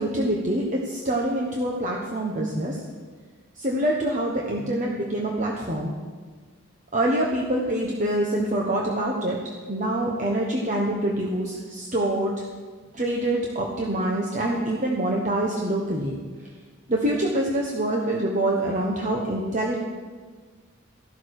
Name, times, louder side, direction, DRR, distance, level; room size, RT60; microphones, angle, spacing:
voice 1, 0.0-2.8 3.5-5.9 6.9-9.4 9.7-12.3 12.9-16.2 16.9-19.8, right 1 dB, 35° right, -1 dB, 1.3 m, -25 dB
14.5 x 12.5 x 4.9 m, 1.5 s
head